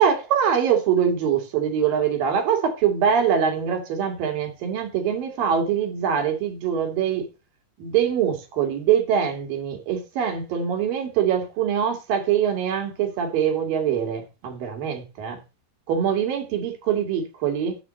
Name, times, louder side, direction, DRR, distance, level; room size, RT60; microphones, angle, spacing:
voice 1, 0.0-7.3 7.8-15.4 15.9-17.8, right 8 dB, 85° right, 3.8 m, -23 dB
10.5 x 4.1 x 7.5 m
omnidirectional pair, 3.9 m